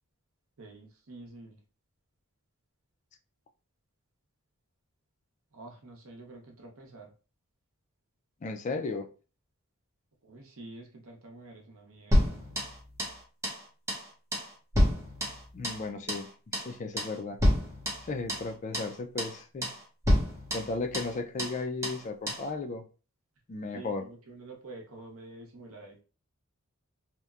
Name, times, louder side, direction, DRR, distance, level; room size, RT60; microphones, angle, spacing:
voice 1, 0.6-1.6 5.5-7.1 10.2-12.6 16.9-17.0 23.7-26.0, right 2 dB, 70° right, 1 dB, 0.7 m, -48 dB
voice 2, 8.4-9.1 15.5-16.3 16.5-17.4 18.1-19.7 20.5-22.9 23.5-24.0, left 3 dB, 35° left, 5 dB, 0.3 m, -35 dB
sound 1, 12.1-13.2 13.4-13.6 13.9-14.1 14.3-16.3 16.5-16.7 17.0-17.2 17.4-18.5 18.7-18.9 19.2-19.4 19.6-19.8 20.1-21.1 21.4-21.6 21.8-22.0 22.3-22.5, equal, 15° right, 0.8 m, -28 dB
2.8 x 2.1 x 2.3 m, 0.35 s
head